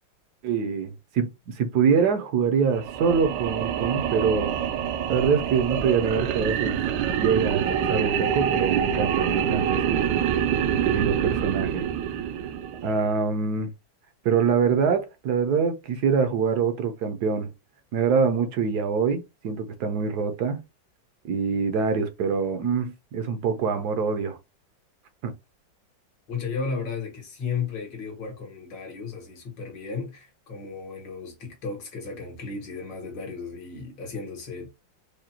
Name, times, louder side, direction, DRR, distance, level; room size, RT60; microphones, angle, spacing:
voice 1, 0.4-4.6 5.1-6.8 7.2-11.8 12.2-12.3 12.8-13.7 14.2-17.5 17.9-20.6 21.3-24.4 25.2-25.3, right 6 dB, 70° right, 1.1 m, -25 dB
sound 1, 2.7-13.1, right 9 dB, 90° right, 1.3 m, -26 dB
voice 2, 26.3-34.7, left 5 dB, 75° left, 2.1 m, -34 dB
4.9 x 2.2 x 2.8 m
omnidirectional pair, 2.0 m